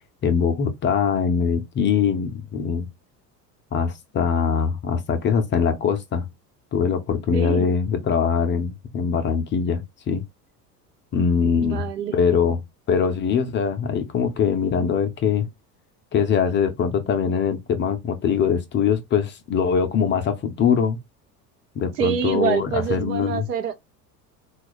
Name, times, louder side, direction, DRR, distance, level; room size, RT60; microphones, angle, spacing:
voice 1, 0.2-2.9 3.7-6.3 6.7-10.2 11.1-11.9 12.1-12.6 12.9-15.5 16.1-21.0 21.8-23.5, left 6 dB, 25° left, 0.5 m, -22 dB
voice 2, 7.3-7.7 11.6-12.2 22.0-23.7, right 8 dB, 70° right, 0.8 m, -25 dB
3.9 x 2.3 x 2.9 m
figure-of-eight pair, 70°, 49 cm